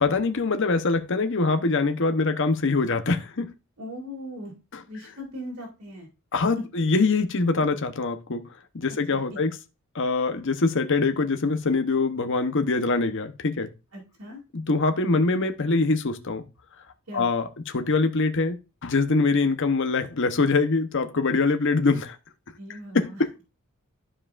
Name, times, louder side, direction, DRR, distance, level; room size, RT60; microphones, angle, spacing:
voice 1, 0.0-3.5 6.3-8.4 8.7-9.5 9.9-13.7 14.5-16.4 17.1-18.6 18.8-22.2 22.9-23.3, left 3 dB, 60° left, 0.9 m, -23 dB
voice 2, 3.8-4.5 4.9-6.1 6.6-6.7 9.1-9.4 13.9-14.4 17.1-17.3 22.6-23.2, equal, 75° right, 2.6 m, -39 dB
12.0 x 4.9 x 2.5 m
head